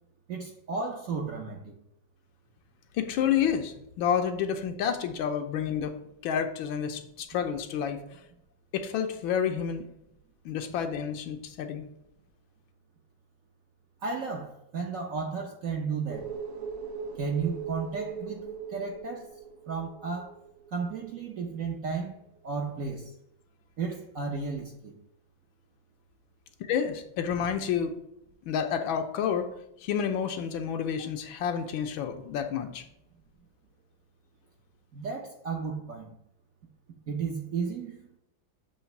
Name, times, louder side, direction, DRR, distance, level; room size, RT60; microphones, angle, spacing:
voice 1, 0.3-1.7 14.0-16.3 17.2-19.4 19.7-20.4 20.7-22.2 22.4-23.1 23.8-25.0 34.9-36.2 37.1-38.1, right 5 dB, 60° right, 0.9 m, -33 dB
voice 2, 2.9-5.9 6.2-8.2 8.7-9.8 10.4-11.9 26.6-27.9 28.5-29.5 29.8-32.8, left 8 dB, 80° left, 1.5 m, -29 dB
sound 1, 16.1-21.3 21.6-21.7, right 5 dB, 75° right, 1.5 m, -40 dB
7.3 x 3.2 x 5.8 m
omnidirectional pair, 2.2 m